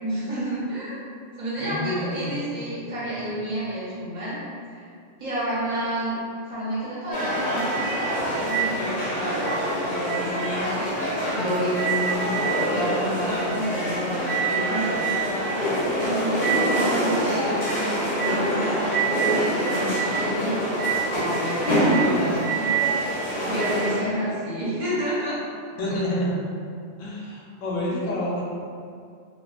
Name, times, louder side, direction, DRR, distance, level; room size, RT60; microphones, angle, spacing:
voice 1, 0.0-1.0 1.4-4.4 4.7-4.9 5.2-6.2 6.4-9.4 9.8-10.9 11.3-15.4 16.0-20.6 21.0-22.8 23.1-25.4 25.9-26.0, equal, 40° right, -10 dB, 0.8 m, -30 dB
voice 2, 1.6-2.4 2.8-2.9 25.8-26.3 27.0-28.4, left 1 dB, 85° left, -4 dB, 0.9 m, -28 dB
sound 1, 7.1-24.0, right 1 dB, 45° left, 0.7 m, -25 dB
2.3 x 2.2 x 2.4 m, 2.3 s
omnidirectional pair, 1.3 m